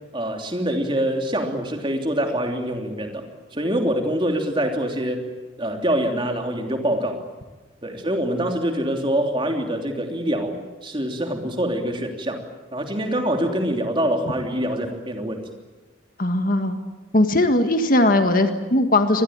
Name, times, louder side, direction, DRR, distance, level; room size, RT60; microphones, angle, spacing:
voice 1, 0.1-5.2 5.6-7.2 7.8-12.4 12.7-15.5, right 1 dB, 25° right, 3 dB, 3.1 m, -25 dB
voice 2, 16.2-16.8 17.1-19.2, left 1 dB, 45° left, 7 dB, 1.8 m, -19 dB
25.0 x 20.0 x 8.9 m, 1.2 s
head